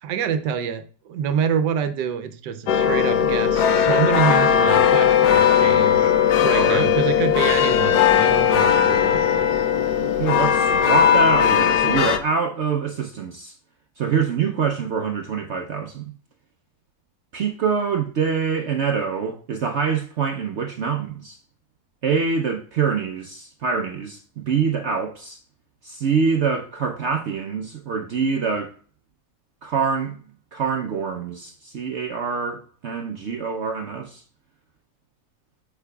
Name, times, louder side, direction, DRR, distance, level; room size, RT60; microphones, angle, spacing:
voice 1, 0.0-6.1 6.4-9.5, right 7 dB, 80° right, 1.3 m, -26 dB
sound 1, 2.7-12.2, left 8 dB, 70° left, 1.2 m, -18 dB
voice 2, 6.5-6.9 10.0-13.6 14.0-16.1 17.3-21.4 22.0-25.4 25.8-28.7 29.6-30.2 30.5-34.2, right 6 dB, 65° right, 0.6 m, -25 dB
8.2 x 5.8 x 2.3 m
omnidirectional pair, 1.8 m